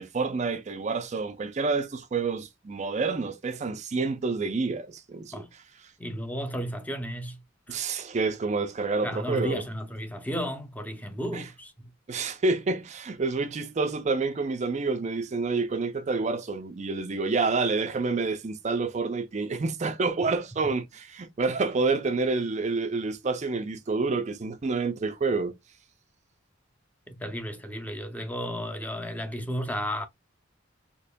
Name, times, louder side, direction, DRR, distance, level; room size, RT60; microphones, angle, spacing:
voice 1, 0.0-5.4 7.7-9.6 11.3-11.4 12.1-25.5, right 4 dB, 35° right, 0.4 m, -28 dB
voice 2, 6.0-7.4 7.7-7.8 9.0-11.9 27.1-30.1, equal, 10° left, 0.6 m, -33 dB
4.2 x 2.9 x 2.2 m
head